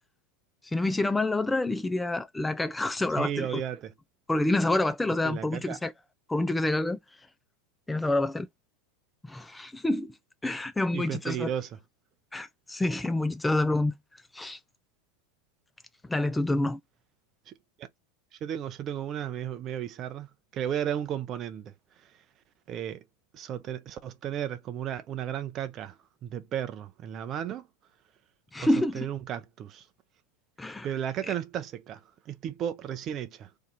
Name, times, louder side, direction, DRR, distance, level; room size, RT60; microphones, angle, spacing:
voice 1, 0.6-3.6 4.3-5.9 6.3-7.0 7.9-8.5 9.2-10.1 10.4-11.5 12.3-13.9 14.3-14.6 16.1-16.8 28.5-29.1 30.6-30.9 31.3-31.4, left 2 dB, 10° left, 0.3 m, -27 dB
voice 2, 3.2-3.9 5.2-5.8 10.9-11.7 17.5-17.6 17.8-17.9 18.4-20.3 20.5-21.7 22.7-23.0 23.3-26.0 26.2-27.7 28.6-29.8 30.8-32.0 32.3-33.5, right 10 dB, 40° right, 0.6 m, -34 dB
2.7 x 2.4 x 4.0 m
hypercardioid pair, 90°, 0 cm